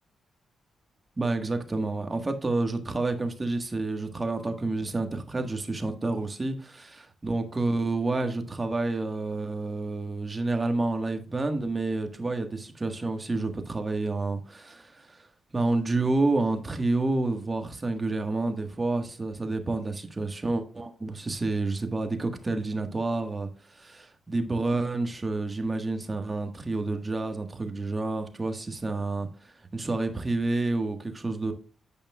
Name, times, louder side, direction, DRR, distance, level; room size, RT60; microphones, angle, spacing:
voice 1, 1.2-15.3 15.5-31.5, right 2 dB, 30° right, 1.4 m, -29 dB
9.4 x 5.3 x 2.3 m
cardioid pair, 60°, 0 cm